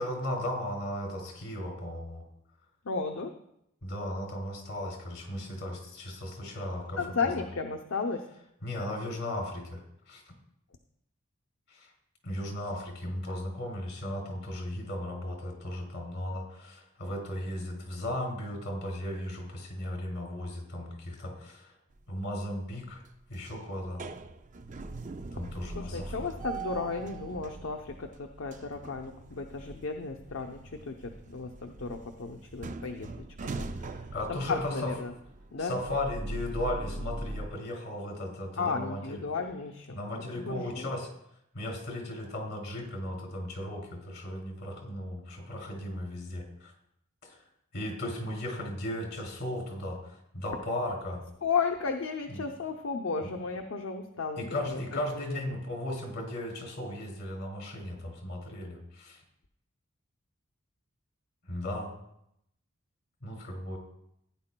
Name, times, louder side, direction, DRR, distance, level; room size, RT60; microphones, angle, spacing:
voice 1, 0.0-2.2 3.8-7.4 8.6-10.3 11.7-11.9 12.2-21.7 22.1-23.0 23.3-24.0 25.3-26.3 34.1-34.9 35.6-39.2 39.9-41.1 41.5-46.7 47.3-47.4 47.7-51.2 52.3-52.5 53.2-53.3 54.4-59.2 61.5-61.9 63.2-63.8, left 1 dB, 55° left, 1 dB, 2.8 m, -36 dB
voice 2, 2.8-3.3 7.0-8.2 25.7-34.0 34.3-35.1 35.5-35.7 38.6-40.0 40.3-40.9 51.4-54.8 55.1-55.6, left 5 dB, 70° left, 3 dB, 0.7 m, -34 dB
sound 1, 22.0-22.5 22.9-37.5, right 2 dB, 40° right, 0.5 m, -41 dB
15.5 x 9.7 x 2.2 m, 0.77 s
head